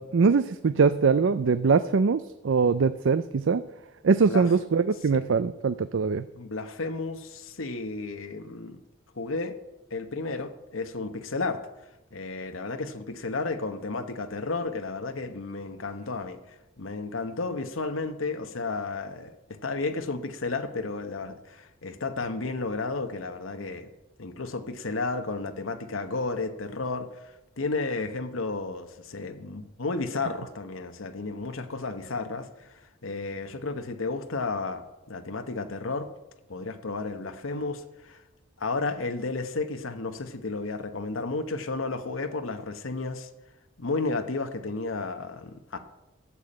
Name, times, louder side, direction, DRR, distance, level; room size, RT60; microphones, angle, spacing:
voice 1, 0.0-3.6 4.0-6.2, right 5 dB, 70° right, 0.4 m, -22 dB
voice 2, 6.3-8.8 9.2-9.6 9.9-11.6 12.1-23.9 24.2-36.1 36.5-38.2 38.6-43.3 43.8-45.8, left 3 dB, 85° left, 1.1 m, -32 dB
13.0 x 7.0 x 8.7 m
head